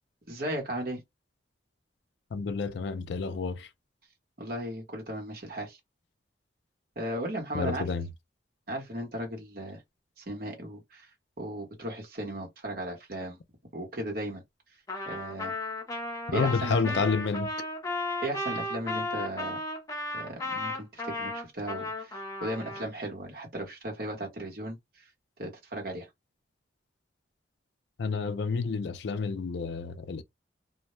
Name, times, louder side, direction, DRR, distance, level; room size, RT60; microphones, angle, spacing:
voice 1, 0.3-1.0 4.4-5.8 7.0-7.9 8.7-9.8 10.2-11.1 11.4-13.4 13.7-14.4 15.1-15.5 16.3-17.0 18.2-19.6 20.1-25.1 25.4-26.1, right 1 dB, 50° right, 1.0 m, -36 dB
voice 2, 2.3-3.7 7.5-8.1 16.3-17.5 28.0-30.2, left 5 dB, 60° left, 0.4 m, -29 dB
Trumpet, 14.9-22.9, left 2 dB, 20° left, 0.7 m, -34 dB
2.2 x 2.1 x 2.9 m
head